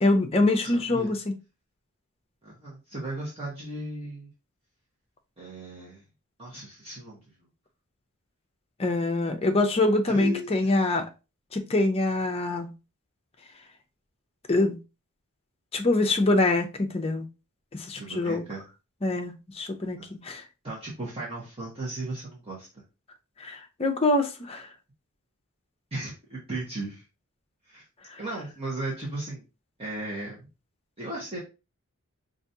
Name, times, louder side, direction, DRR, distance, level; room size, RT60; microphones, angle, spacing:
voice 1, 0.0-1.2 8.8-11.1 11.5-12.7 14.5-14.8 15.7-17.2 17.7-18.5 19.0-20.4 23.4-24.7 28.1-28.2, left 2 dB, 25° left, 0.6 m, -25 dB
voice 2, 0.7-1.1 2.4-4.3 5.4-6.0 6.4-7.2 10.1-10.7 17.9-18.6 20.0-20.1 20.6-22.7 25.9-27.0 27.7-27.8 28.2-29.4 29.8-30.5 31.0-31.4, right 2 dB, 25° right, 1.1 m, -36 dB
4.9 x 2.6 x 2.7 m
head